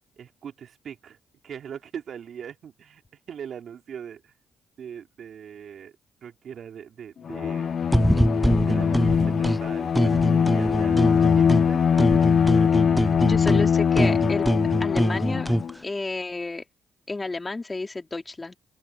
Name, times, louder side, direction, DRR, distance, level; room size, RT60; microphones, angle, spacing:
voice 1, 0.2-1.2 1.4-3.0 3.3-4.3 4.8-6.0 6.2-7.8 8.6-12.0, right 8 dB, 65° right, 3.2 m, -41 dB
Bowed string instrument, 7.2-15.7, left 7 dB, 60° left, 1.0 m, -22 dB
sound 1, 7.9-9.6 9.9-11.7 12.0-15.7, equal, 5° right, 0.6 m, -23 dB
voice 2, 13.2-14.5 14.8-15.5 15.8-16.6 17.1-18.5, left 3 dB, 25° left, 3.2 m, -31 dB
open air
supercardioid pair, 65°, 0 cm